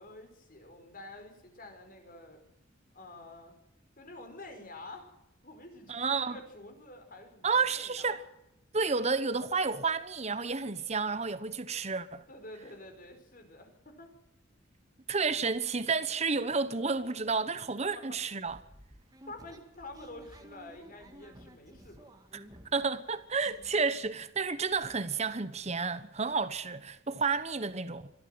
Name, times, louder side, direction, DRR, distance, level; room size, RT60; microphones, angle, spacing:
voice 1, 0.0-2.4 2.9-3.6 4.0-5.2 5.4-8.2 12.3-14.1 18.0-18.2 19.3-22.2 23.6-23.7, left 2 dB, 45° left, 5.2 m, -48 dB
voice 2, 5.9-6.4 7.4-8.2 8.7-12.2 15.1-18.6 22.3-22.4 22.7-28.1, right 4 dB, 35° right, 1.1 m, -31 dB
sound 1, 18.5-22.9 23.2-24.1 24.5-24.6 24.7-25.0, right 1 dB, 20° right, 2.2 m, -54 dB
25.5 x 14.0 x 7.9 m
head